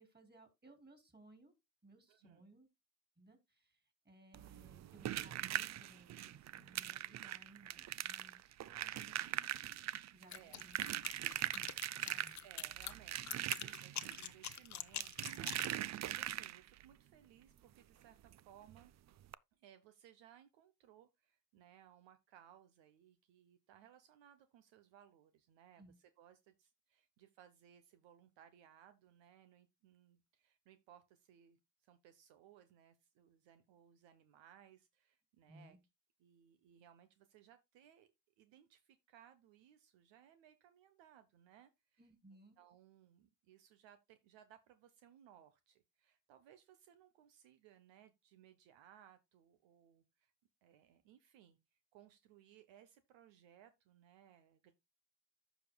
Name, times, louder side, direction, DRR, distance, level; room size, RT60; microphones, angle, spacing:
voice 1, 0.0-1.5 1.8-2.7 3.2-9.6 10.1-10.9 11.4-12.4 25.8-25.9 35.5-35.8 42.0-42.6, right 1 dB, 20° right, 3.2 m, -63 dB
voice 2, 2.1-2.4 10.3-10.7 12.4-18.9 19.5-35.8 36.2-42.1 42.6-50.3 50.6-54.7, right 10 dB, 75° right, 0.9 m, -64 dB
sound 1, 4.3-16.8 18.3-18.4 18.7-18.8 19.2-19.3, right 13 dB, 40° right, 0.4 m, -42 dB
sound 2, 10.3-15.8, left 10 dB, 40° left, 0.7 m, -46 dB
14.5 x 5.1 x 2.2 m
supercardioid pair, 65°, 45 cm